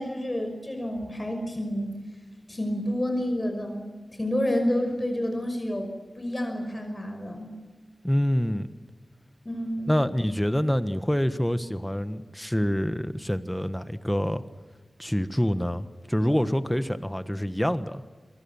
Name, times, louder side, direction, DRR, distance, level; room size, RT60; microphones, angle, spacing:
voice 1, 0.0-2.0 2.5-5.9 6.2-7.5 9.4-9.9, left 1 dB, 30° left, 4 dB, 5.7 m, -29 dB
voice 2, 8.0-8.7 9.9-14.4 15.0-18.0, equal, 5° left, 11 dB, 1.4 m, -26 dB
26.5 x 23.0 x 7.2 m, 1.3 s
wide cardioid pair, 70°, 0 cm